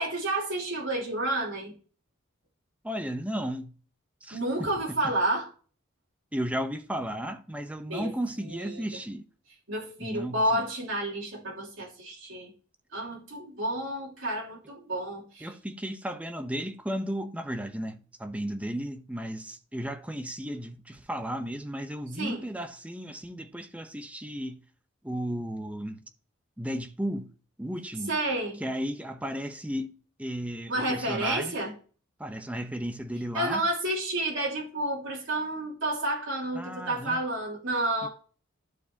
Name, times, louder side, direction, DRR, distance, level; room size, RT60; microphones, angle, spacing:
voice 1, 0.0-1.7 4.3-5.5 7.9-8.1 8.5-8.8 9.7-12.5 12.9-15.5 22.2-22.4 28.1-28.6 30.7-31.7 33.3-38.1, right 1 dB, 70° right, 2.8 m, -30 dB
voice 2, 2.8-3.8 4.2-4.4 4.9-5.2 6.3-9.3 10.0-10.6 15.4-24.6 25.0-26.0 26.6-27.3 27.6-28.2 28.6-29.9 30.2-31.6 32.2-33.7 36.5-37.2 38.0-38.1, equal, 5° right, 0.8 m, -34 dB
12.0 x 4.8 x 2.7 m
head